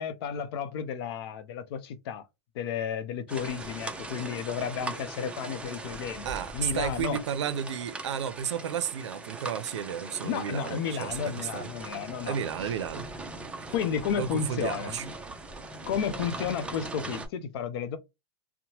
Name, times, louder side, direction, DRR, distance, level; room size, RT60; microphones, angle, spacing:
voice 1, 0.0-2.2 2.5-6.3 6.5-7.2 10.2-12.4 13.7-15.1 15.8-18.0, left 7 dB, 60° left, 0.6 m, -32 dB
sound 1, 3.3-17.3, right 2 dB, 10° right, 0.5 m, -40 dB
voice 2, 6.2-11.7 12.2-13.1 14.1-15.1, right 8 dB, 85° right, 0.5 m, -33 dB
2.8 x 2.1 x 2.7 m
hypercardioid pair, 130°, 14 cm